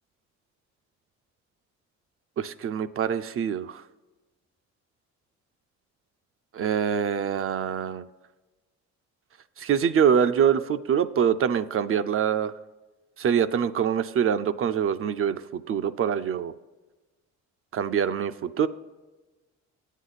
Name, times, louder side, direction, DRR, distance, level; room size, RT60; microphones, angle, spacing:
voice 1, 2.4-3.8 6.5-8.1 9.6-12.5 13.2-16.5 17.7-18.7, right 8 dB, 45° right, 11 dB, 0.4 m, -24 dB
9.1 x 8.2 x 4.0 m, 1.2 s
cardioid pair, 90°, 30 cm